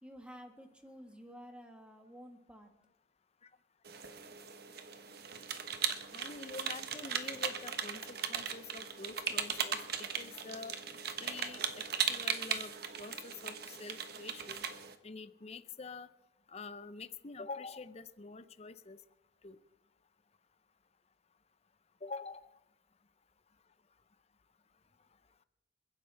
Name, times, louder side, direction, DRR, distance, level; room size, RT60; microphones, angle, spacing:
voice 1, 0.0-2.7, equal, 5° right, 4 dB, 1.6 m, -52 dB
sound 1, 3.9-15.0, right 7 dB, 55° right, 1.2 m, -38 dB
voice 2, 6.1-10.8 11.2-14.7 15.0-16.1 16.5-19.0 19.4-19.6 22.0-22.5, left 4 dB, 30° left, 13 dB, 0.6 m, -46 dB
29.0 x 10.5 x 3.4 m, 0.93 s
head